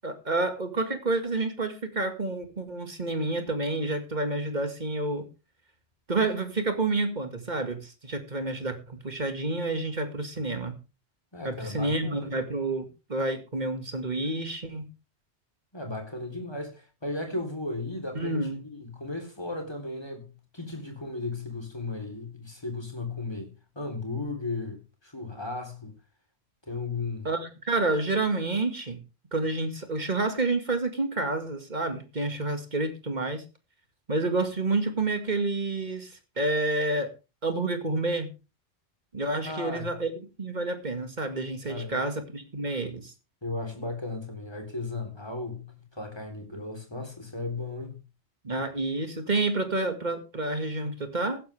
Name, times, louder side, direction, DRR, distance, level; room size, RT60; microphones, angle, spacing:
voice 1, 0.0-5.3 6.1-10.7 11.4-14.9 18.1-18.6 27.2-29.0 29.3-33.4 34.1-37.1 37.4-38.3 39.1-40.1 40.4-43.1 48.4-51.4, right 2 dB, 40° right, 2.2 m, -29 dB
voice 2, 11.3-12.3 15.7-20.3 20.5-25.9 26.7-27.3 39.4-39.9 41.7-42.0 43.4-48.0, left 3 dB, 25° left, 3.8 m, -35 dB
15.5 x 11.5 x 3.5 m
omnidirectional pair, 1.1 m